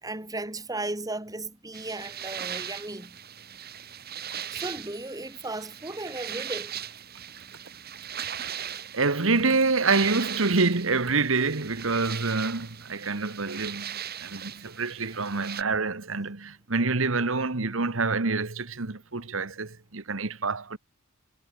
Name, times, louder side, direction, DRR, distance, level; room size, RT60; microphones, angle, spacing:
voice 1, 0.0-3.2 4.5-6.7, right 2 dB, 15° right, 2.7 m, -35 dB
sound 1, 1.7-15.6, right 9 dB, 45° right, 3.6 m, -39 dB
voice 2, 8.9-20.8, right 3 dB, 65° right, 1.5 m, -27 dB
head